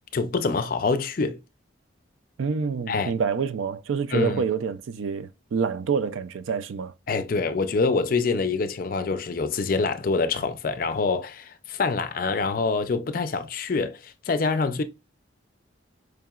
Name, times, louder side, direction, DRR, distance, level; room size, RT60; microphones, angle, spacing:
voice 1, 0.1-1.4 2.9-3.1 4.1-4.4 7.1-14.8, left 4 dB, 45° left, 0.4 m, -25 dB
voice 2, 2.4-6.9, right 6 dB, 85° right, 0.4 m, -27 dB
4.8 x 2.8 x 2.3 m
head